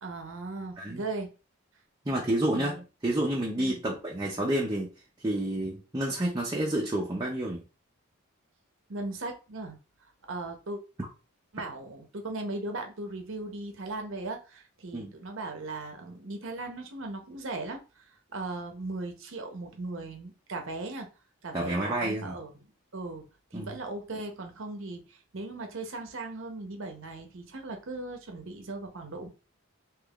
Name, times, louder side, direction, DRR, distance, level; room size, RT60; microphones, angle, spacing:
voice 1, 0.0-1.3 2.1-2.2 2.5-2.8 3.6-3.8 8.9-9.8 10.3-10.8 11.5-18.1 18.3-21.1 21.4-22.5 22.9-29.3, right 2 dB, 60° right, 0.7 m, -38 dB
voice 2, 2.1-4.9 5.2-7.6 14.9-15.1 21.5-22.4 23.5-23.8, right 1 dB, 20° right, 0.5 m, -29 dB
3.4 x 3.0 x 2.3 m
head